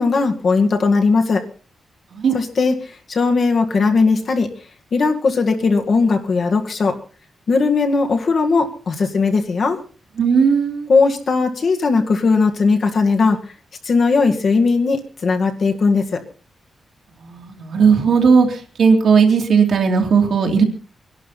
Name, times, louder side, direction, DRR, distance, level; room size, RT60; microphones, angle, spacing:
voice 1, 0.0-1.4 2.3-4.5 4.9-7.0 7.5-9.8 10.9-13.4 13.8-16.2, left 4 dB, 50° left, 4 dB, 1.9 m, -18 dB
voice 2, 10.2-10.9 17.3-20.6, right 5 dB, 65° right, 2 dB, 2.7 m, -16 dB
23.0 x 11.5 x 4.2 m, 0.39 s
wide cardioid pair, 155°, 0 cm